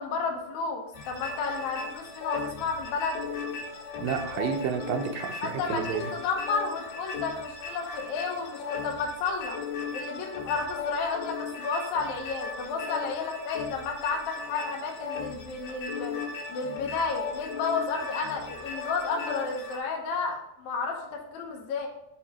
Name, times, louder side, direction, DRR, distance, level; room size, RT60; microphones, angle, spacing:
voice 1, 0.0-3.2 5.4-9.6 9.9-16.2 16.5-21.9, left 4 dB, 70° left, 1 dB, 2.0 m, -32 dB
sound 1, 0.9-19.8, left 5 dB, 85° left, 3.4 m, -37 dB
voice 2, 4.0-6.1, right 7 dB, 80° right, 4 dB, 2.2 m, -31 dB
6.6 x 4.7 x 4.2 m, 0.80 s
omnidirectional pair, 4.2 m